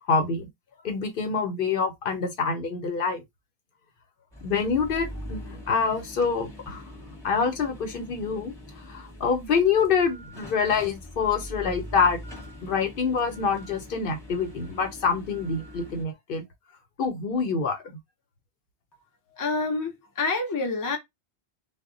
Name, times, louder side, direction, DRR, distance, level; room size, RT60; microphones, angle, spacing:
voice 1, 0.1-0.4 0.8-3.2 4.4-6.8 7.2-8.5 8.9-12.2 12.6-16.4 17.0-17.8, left 5 dB, 65° left, 0.8 m, -26 dB
sound 1, 4.3-16.1, equal, 5° left, 0.8 m, -43 dB
voice 2, 19.3-21.0, left 3 dB, 25° left, 0.4 m, -27 dB
2.1 x 2.0 x 3.6 m
omnidirectional pair, 1.1 m